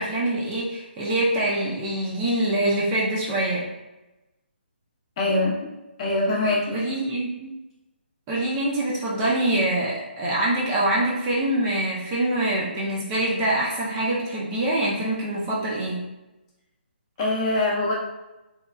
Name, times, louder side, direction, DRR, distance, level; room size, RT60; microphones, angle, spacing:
voice 1, 0.0-3.7 6.7-7.5 8.3-16.0, right 1 dB, 20° right, -6 dB, 0.4 m, -25 dB
voice 2, 5.2-5.6 6.0-6.8 17.2-17.9, left 2 dB, 30° left, -4 dB, 0.6 m, -23 dB
2.9 x 2.2 x 2.2 m, 1.0 s
figure-of-eight pair, 150°, 6 cm